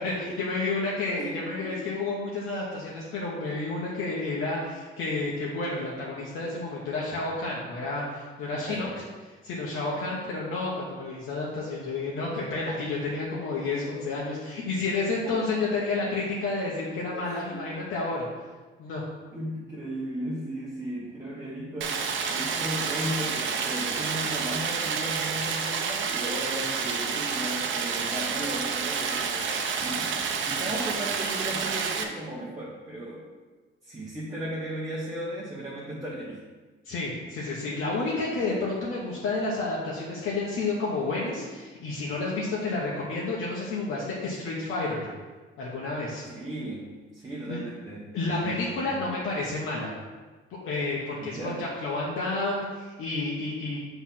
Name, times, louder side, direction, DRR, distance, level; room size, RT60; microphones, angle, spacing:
voice 1, 0.0-8.9 9.4-18.3 18.8-19.0 36.8-45.1 45.6-46.2 47.5-47.6 48.1-49.9 50.6-53.8, left 3 dB, 75° left, -5 dB, 1.2 m, -30 dB
voice 2, 1.2-1.8 8.7-9.0 15.2-15.7 17.1-17.7 19.3-33.3 33.8-36.4 46.3-46.9 47.1-49.0 51.2-51.7, right 1 dB, 15° right, -6 dB, 1.1 m, -36 dB
Stream, 21.8-32.0, right 5 dB, 65° right, 0.7 m, -29 dB
6.3 x 3.5 x 5.9 m, 1.3 s
cardioid pair, 150°, 21 cm